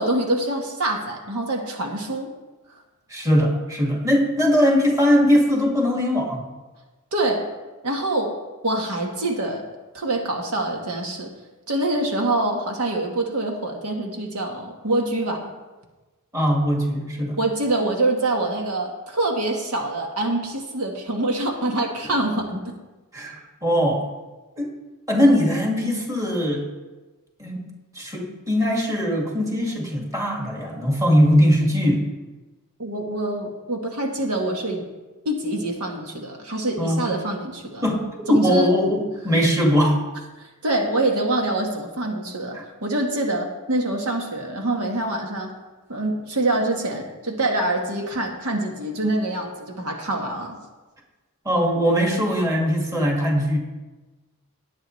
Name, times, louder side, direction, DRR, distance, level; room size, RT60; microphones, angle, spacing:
voice 1, 0.0-2.3 7.1-7.5 7.8-8.4 8.6-9.6 9.9-11.3 11.7-15.5 17.4-22.7 32.8-34.8 35.2-37.8 38.3-38.7 40.4-45.5 45.9-50.6, right 2 dB, 80° right, 2 dB, 1.5 m, -25 dB
voice 2, 3.1-6.4 16.3-17.4 23.1-24.0 24.6-24.7 25.1-26.6 27.4-27.6 28.0-32.0 36.8-37.1 37.8-40.0 42.5-42.6 51.5-53.6, equal, 15° right, -1 dB, 2.0 m, -20 dB
17.5 x 8.8 x 3.2 m, 1.2 s
head